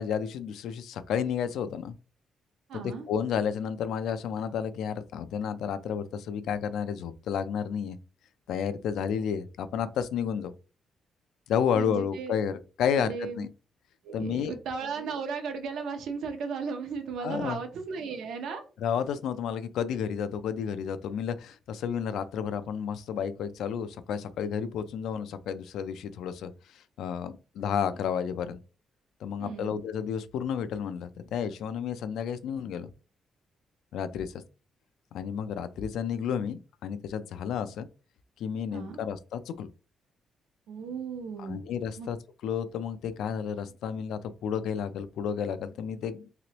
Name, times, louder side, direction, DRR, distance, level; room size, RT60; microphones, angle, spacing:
voice 1, 0.0-1.9 2.7-8.0 8.5-10.5 11.5-13.5 14.1-14.5 17.2-17.6 18.8-28.6 29.2-32.9 33.9-34.3 35.1-37.9 38.4-39.7 41.4-42.2 42.4-46.3, left 7 dB, 85° left, 0.3 m, -31 dB
voice 2, 2.7-3.0 11.7-12.3 13.0-13.5 14.0-18.6 29.4-29.7 38.7-39.0 40.7-41.6 42.0-42.1, right 5 dB, 85° right, 0.7 m, -35 dB
3.0 x 2.9 x 2.9 m
cardioid pair, 145°, 0 cm